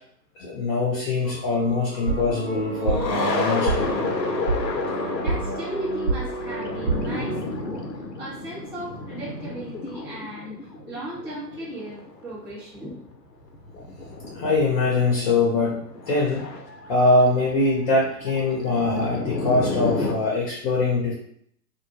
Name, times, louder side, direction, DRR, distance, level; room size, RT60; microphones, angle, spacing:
voice 1, 0.4-4.1 14.3-16.5 16.9-21.1, left 2 dB, 35° left, -3 dB, 0.7 m, -23 dB
sound 1, 1.3-12.5 12.8-12.9 13.2-13.3 13.5-20.1, left 3 dB, 85° left, 0.7 m, -32 dB
sound 2, 2.0-7.4, right 3 dB, 65° right, 1.0 m, -28 dB
voice 2, 5.1-7.9 8.2-13.1, right 1 dB, 10° right, -12 dB, 0.6 m, -36 dB
2.1 x 2.1 x 3.1 m, 0.67 s
figure-of-eight pair, 115°, 49 cm